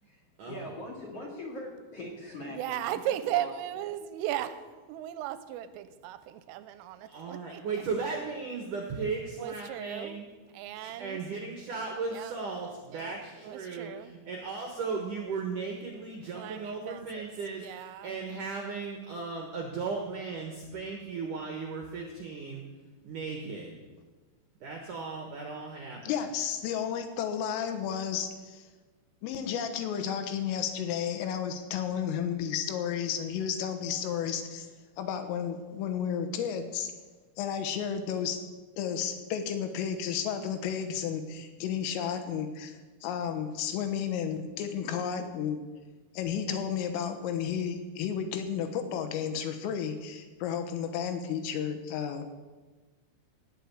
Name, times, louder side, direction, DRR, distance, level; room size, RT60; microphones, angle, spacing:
voice 1, 0.0-3.5, left 1 dB, 40° left, 0 dB, 2.3 m, -42 dB
voice 2, 2.5-7.8 9.4-10.2 10.5-11.2 12.1-12.4 12.9-14.2 16.3-18.2, right 12 dB, 90° right, 12 dB, 3.2 m, -37 dB
voice 3, 7.1-10.2 10.7-22.6 23.0-23.8 24.6-26.0, right 4 dB, 75° right, 1 dB, 1.9 m, -36 dB
voice 4, 26.0-28.6 29.2-34.7 35.0-36.9 37.4-38.4 38.8-42.8 43.0-45.6 46.1-52.3, left 8 dB, 85° left, 7 dB, 3.7 m, -32 dB
18.0 x 6.3 x 8.5 m, 1.3 s
omnidirectional pair, 5.8 m